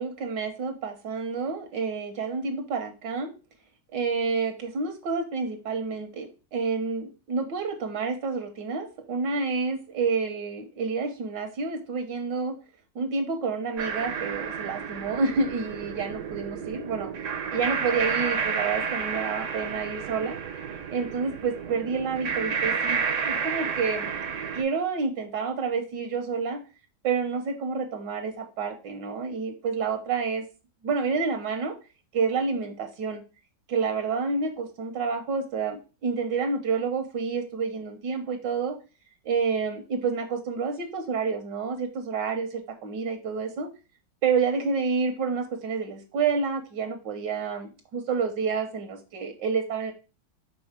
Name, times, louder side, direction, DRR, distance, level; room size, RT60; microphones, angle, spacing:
voice 1, 0.0-3.3 3.9-12.5 12.9-17.1 17.5-20.4 20.9-26.6 27.0-30.4 30.8-31.7 32.1-33.2 33.7-38.7 39.2-43.7 44.2-49.9, right 5 dB, 75° right, 6 dB, 1.6 m, -29 dB
sound 1, 13.8-24.6, right 6 dB, 55° right, 1.0 m, -31 dB
5.5 x 3.8 x 5.1 m, 0.32 s
omnidirectional pair, 2.0 m